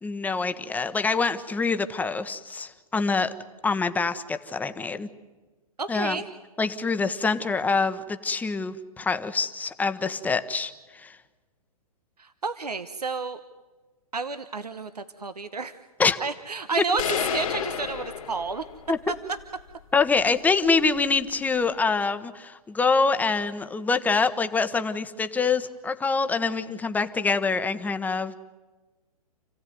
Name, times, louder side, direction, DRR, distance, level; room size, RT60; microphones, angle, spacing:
voice 1, 0.0-3.3 3.6-5.1 5.9-6.2 6.6-11.2 16.0-16.2 18.9-19.0 19.9-28.3, left 4 dB, 10° left, 10 dB, 1.2 m, -25 dB
voice 2, 5.8-6.3 12.2-13.4 14.1-15.7 16.2-18.6, right 4 dB, 85° right, 10 dB, 1.2 m, -31 dB
sound 1, 17.0-18.9, left 8 dB, 55° left, 2.6 m, -30 dB
29.5 x 16.0 x 9.5 m, 1.2 s
figure-of-eight pair, 120°, 20 cm